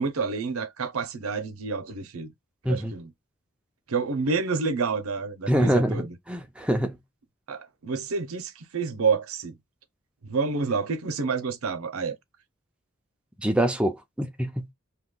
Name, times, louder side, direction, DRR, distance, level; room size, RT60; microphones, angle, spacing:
voice 1, 0.0-2.3 2.7-3.1 3.9-6.2 7.5-9.6 10.2-12.2, right 4 dB, 85° right, 0.7 m, -28 dB
voice 2, 5.5-7.0 13.4-14.7, right 1 dB, 5° right, 0.4 m, -25 dB
2.9 x 2.3 x 3.7 m
head